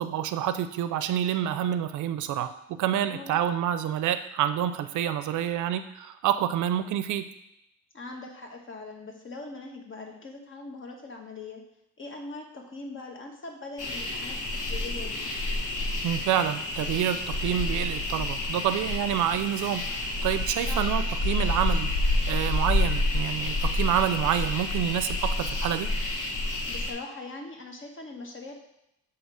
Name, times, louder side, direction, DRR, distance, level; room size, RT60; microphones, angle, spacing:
voice 1, 0.0-7.3 16.0-21.9 22.3-25.9, right 10 dB, 75° right, 11 dB, 0.5 m, -28 dB
voice 2, 7.9-11.6 12.0-15.3 20.7-20.8 26.7-28.5, left 3 dB, 40° left, 2 dB, 1.3 m, -41 dB
sound 1, 13.8-26.9, left 2 dB, 80° left, 1.2 m, -29 dB
7.8 x 2.9 x 4.9 m, 0.83 s
cardioid pair, 90°, 30 cm